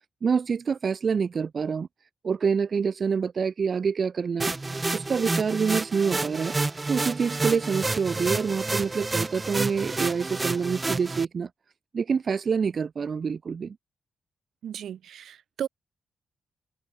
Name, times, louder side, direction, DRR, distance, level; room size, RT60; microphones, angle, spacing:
voice 1, 0.2-1.9 2.2-4.5 4.9-6.5 6.9-11.5 11.9-13.8, right 6 dB, 50° right, 0.4 m, -26 dB
sound 1, 4.4-11.2, right 3 dB, 25° right, 1.5 m, -29 dB
voice 2, 14.6-15.7, right 9 dB, 80° right, 1.4 m, -35 dB
cardioid pair, 80°, 0 cm